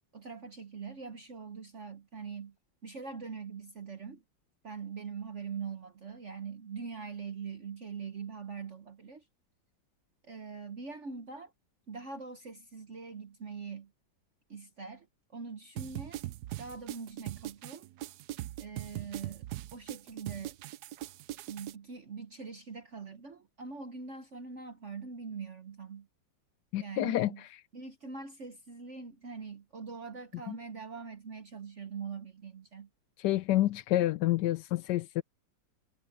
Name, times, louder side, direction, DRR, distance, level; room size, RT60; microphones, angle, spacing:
voice 1, 0.1-2.5 2.8-4.2 4.6-9.2 10.2-11.5 11.9-13.9 14.5-15.1 15.3-16.2 16.6-17.9 18.6-19.4 19.7-20.6 21.5-26.1 26.8-27.4 27.7-32.9, right 5 dB, 45° right, 1.1 m, -43 dB
sound 1, 15.8-21.7, right 15 dB, 70° right, 0.9 m, -40 dB
voice 2, 26.7-27.3 30.5-30.6 33.2-35.2, left 14 dB, 70° left, 1.1 m, -28 dB
omnidirectional pair, 2.1 m